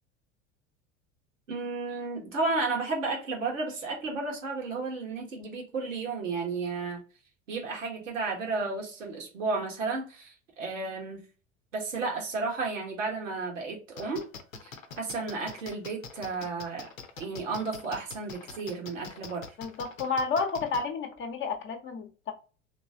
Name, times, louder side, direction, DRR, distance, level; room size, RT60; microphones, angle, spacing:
voice 1, 1.5-7.0 7.5-11.2 11.7-14.3 14.6-14.7 15.0-16.9 17.2-19.5, right 3 dB, 75° right, 1.4 m, -33 dB
sound 1, 14.0-20.8, left 5 dB, 85° left, 0.7 m, -43 dB
voice 2, 19.6-22.3, left 4 dB, 30° left, 0.9 m, -31 dB
3.1 x 3.0 x 2.7 m
figure-of-eight pair, 75°, 39 cm